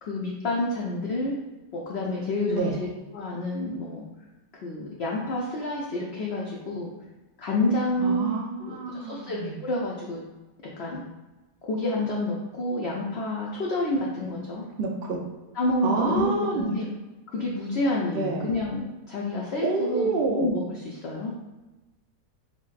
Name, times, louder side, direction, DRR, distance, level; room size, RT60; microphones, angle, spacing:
voice 1, 0.0-1.4 1.7-2.9 3.1-4.0 4.6-6.9 7.4-8.3 8.6-10.2 10.8-11.0 11.6-14.6 15.6-16.9 17.3-21.3, left 1 dB, 85° left, -3 dB, 0.5 m, -29 dB
voice 2, 2.5-2.8 8.0-9.6 14.8-15.2 15.8-16.7 18.1-18.5 19.6-20.5, right 3 dB, 70° right, 0 dB, 0.5 m, -28 dB
6.1 x 2.1 x 2.4 m, 1.1 s
omnidirectional pair, 1.7 m